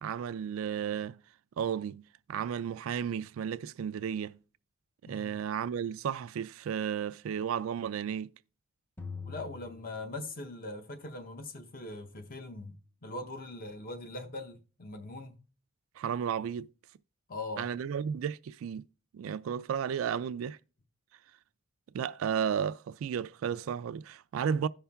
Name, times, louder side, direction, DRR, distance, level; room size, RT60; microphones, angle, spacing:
voice 1, 0.0-1.2 1.6-4.4 5.1-8.3 16.0-16.7 17.6-18.8 19.1-20.6 21.9-24.7, right 8 dB, 75° right, 0.3 m, -33 dB
voice 2, 5.1-5.4 9.2-15.4 17.3-17.7, left 2 dB, 45° left, 0.8 m, -41 dB
sound 1, 9.0-10.8, left 5 dB, 10° left, 0.5 m, -44 dB
16.5 x 5.6 x 2.3 m
head